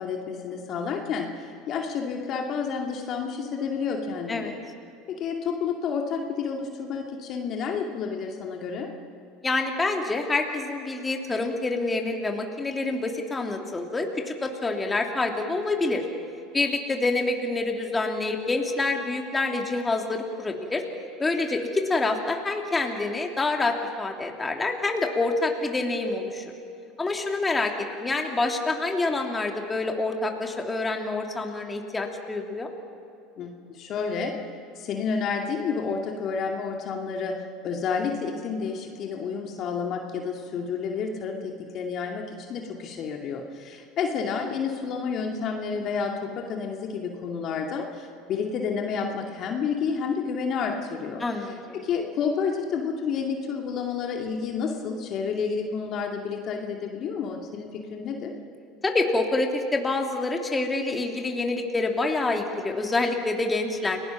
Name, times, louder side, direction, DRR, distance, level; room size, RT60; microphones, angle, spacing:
voice 1, 0.0-4.5 5.1-8.9 33.4-34.3 34.8-58.3, left 5 dB, 50° left, 2 dB, 2.4 m, -30 dB
voice 2, 9.4-16.0 16.5-20.8 21.2-26.4 27.0-27.7 28.0-32.7 51.2-51.8 58.8-64.0, left 3 dB, 20° left, 2 dB, 2.9 m, -27 dB
30.0 x 18.5 x 6.0 m, 2.6 s
hypercardioid pair, 75°, 0 cm